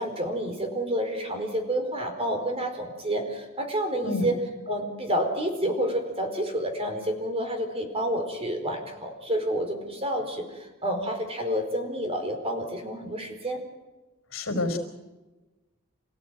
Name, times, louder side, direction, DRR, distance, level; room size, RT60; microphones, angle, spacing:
voice 1, 0.0-4.4 4.7-13.6, equal, 30° right, 5 dB, 4.5 m, -29 dB
voice 2, 14.3-14.8, left 2 dB, 70° left, 6 dB, 4.9 m, -28 dB
28.0 x 16.5 x 9.4 m, 1.1 s
head